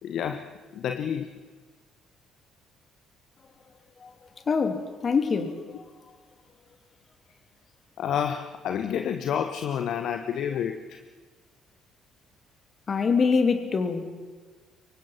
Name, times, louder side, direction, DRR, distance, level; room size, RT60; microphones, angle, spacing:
voice 1, 0.0-1.4 8.0-11.0, left 8 dB, 55° left, 1.1 m, -29 dB
voice 2, 4.5-5.5 12.9-14.0, left 5 dB, 40° left, 3.0 m, -24 dB
26.0 x 23.5 x 5.9 m
figure-of-eight pair, 50°, 0 cm